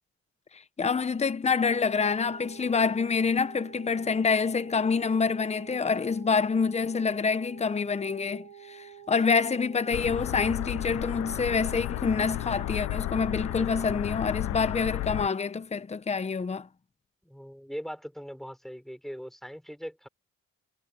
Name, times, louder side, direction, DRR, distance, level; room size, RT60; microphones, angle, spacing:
voice 1, 0.5-16.7, left 5 dB, 20° left, 0.9 m, -27 dB
sound 1, 1.7-14.0, right 8 dB, 65° right, 2.8 m, -49 dB
sound 2, 9.9-15.3, left 17 dB, 85° left, 0.7 m, -33 dB
voice 2, 17.2-20.1, equal, ahead, 6.6 m, -40 dB
cardioid pair, 90°, 30 cm